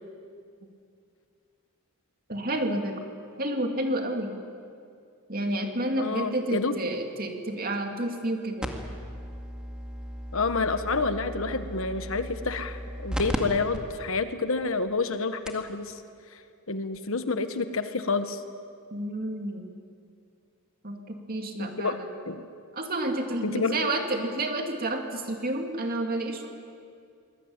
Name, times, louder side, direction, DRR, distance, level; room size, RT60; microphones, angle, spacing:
voice 1, 2.3-3.0 3.4-4.4 5.3-8.7 18.9-19.7 20.8-22.1 22.7-26.5, right 1 dB, 40° right, 3 dB, 2.6 m, -30 dB
voice 2, 5.9-6.8 10.3-16.0 16.7-18.4 21.6-22.0 22.3-22.5 23.4-23.8, left 4 dB, 60° left, 9 dB, 1.3 m, -29 dB
sound 1, 8.6-13.4 13.7-13.8 14.5-14.6 15.1-15.2 15.5-15.7 16.9-17.0, equal, 5° right, 2.0 m, -36 dB
24.0 x 20.5 x 9.0 m, 2.4 s
head